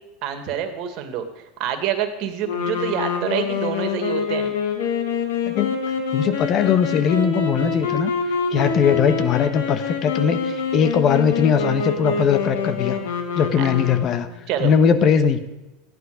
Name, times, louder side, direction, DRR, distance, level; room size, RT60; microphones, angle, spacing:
voice 1, 0.2-1.3 1.6-4.5 13.6-13.7 14.5-14.7, right 9 dB, 55° right, 7 dB, 2.1 m, -26 dB
sound 1, 2.4-14.3, left 5 dB, 80° left, 2.2 m, -26 dB
voice 2, 5.5-5.8 6.1-8.1 8.5-13.0 13.3-14.3 14.6-15.4, left 7 dB, 45° left, 10 dB, 1.4 m, -20 dB
15.0 x 11.0 x 5.2 m, 1.0 s
hypercardioid pair, 95°, 0 cm